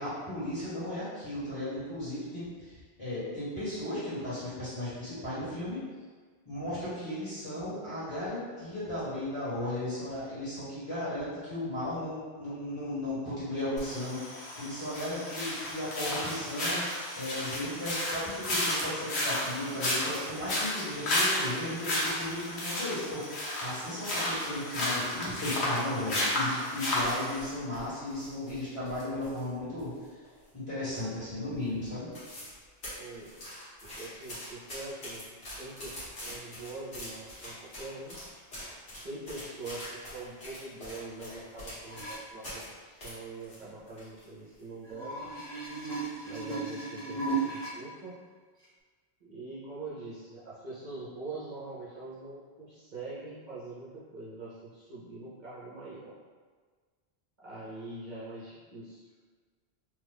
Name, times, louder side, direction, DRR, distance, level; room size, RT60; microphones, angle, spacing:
voice 1, 0.0-5.8 6.4-29.9 30.5-32.1, left 1 dB, 30° left, -13 dB, 1.5 m, -35 dB
sound 1, 13.8-27.5, left 1 dB, 90° left, 1.1 m, -32 dB
sound 2, 27.2-29.5 29.8-30.6 30.9-31.3 31.6-31.7 31.9-32.6 32.8-42.7 43.0-44.2 44.6-44.7 45.3-45.7 46.1-46.3, equal, 70° left, 1.5 m, -44 dB
voice 2, 33.0-33.4 34.0-38.2 39.0-45.4 46.2-48.2 49.2-56.1 57.4-59.0, right 2 dB, 50° right, -10 dB, 0.8 m, -43 dB
sound 3, 41.8-42.2 44.8-47.7 48.6-48.7, right 4 dB, 5° left, 1.2 m, -35 dB
3.0 x 2.4 x 3.5 m, 1.5 s
omnidirectional pair, 1.1 m